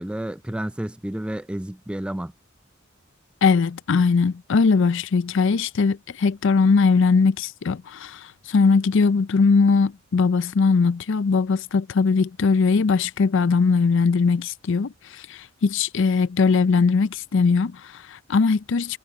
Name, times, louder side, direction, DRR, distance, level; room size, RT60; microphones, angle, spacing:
voice 1, 0.0-2.3, right 1 dB, 5° right, 0.3 m, -30 dB
voice 2, 3.4-19.0, left 4 dB, 65° left, 0.5 m, -20 dB
head